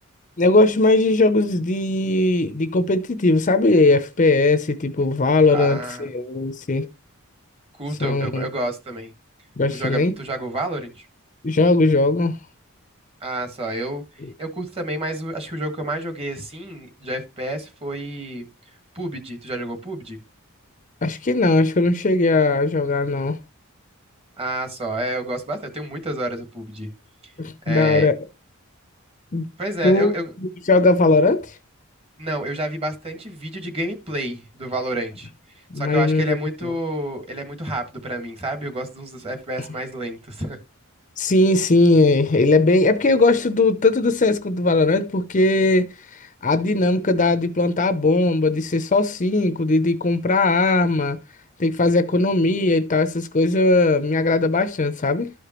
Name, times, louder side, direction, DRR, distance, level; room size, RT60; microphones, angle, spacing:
voice 1, 0.4-6.9 8.0-8.4 9.6-10.1 11.4-12.4 14.2-14.3 21.0-23.4 27.4-28.1 29.3-29.5 29.8-30.1 30.4-31.6 35.7-36.7 41.2-51.2 51.6-55.3, left 2 dB, 35° left, 0.6 m, -19 dB
voice 2, 5.5-6.1 7.8-9.1 9.7-11.0 13.2-14.0 14.4-18.4 18.9-20.2 24.4-26.9 27.6-28.1 29.6-30.3 32.2-35.3 35.7-40.6, right 1 dB, 25° right, 1.6 m, -29 dB
12.5 x 5.0 x 3.0 m
head